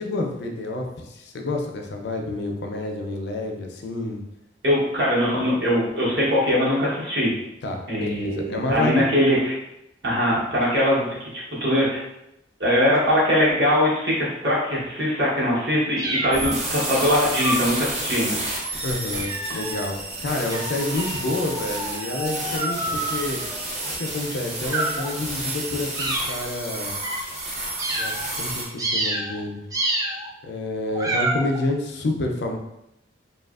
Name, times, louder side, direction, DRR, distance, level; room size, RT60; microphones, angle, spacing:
voice 1, 0.0-4.2 7.6-9.1 18.8-23.4 24.0-26.9 27.9-29.6 30.4-32.6, left 2 dB, 65° left, 2 dB, 0.4 m, -28 dB
voice 2, 4.6-7.3 7.9-9.5 10.0-12.0 12.6-18.3, equal, 65° right, -6 dB, 1.0 m, -21 dB
sound 1, 16.0-16.7 17.3-17.8 18.4-18.7 19.1-19.9 20.5-23.9 24.6-25.1 26.0-26.4 27.0-27.2 27.8-28.3 28.8-29.4 29.7-30.3 30.9-31.6, right 2 dB, 20° right, 0.4 m, -29 dB
sound 2, 16.3-28.6, right 2 dB, 40° right, 0.7 m, -31 dB
2.8 x 2.4 x 2.3 m, 0.86 s
head